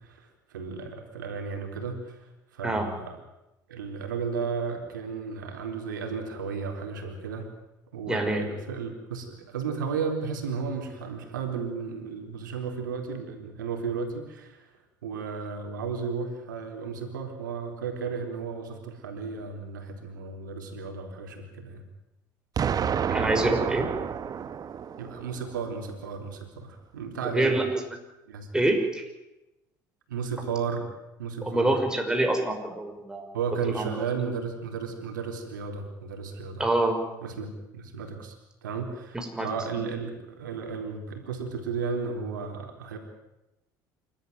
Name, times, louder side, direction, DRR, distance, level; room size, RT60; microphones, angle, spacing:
voice 1, 0.0-3.2 3.7-7.5 7.9-14.7 15.0-21.8 25.0-27.5 28.3-28.5 30.1-30.9 31.2-31.8 33.3-36.7 37.2-38.4 38.6-43.0, right 5 dB, 85° right, 4 dB, 4.1 m, -34 dB
voice 2, 8.1-8.4 23.1-23.9 27.3-27.8 28.5-29.0 31.4-33.3 33.7-33.9 36.6-37.0 39.1-39.5 39.8-39.9, right 1 dB, 5° right, 3 dB, 5.8 m, -26 dB
Explosion, 22.6-25.5, right 7 dB, 40° right, 1.3 m, -29 dB
27.5 x 13.5 x 9.4 m, 0.96 s
hypercardioid pair, 75°, 10 cm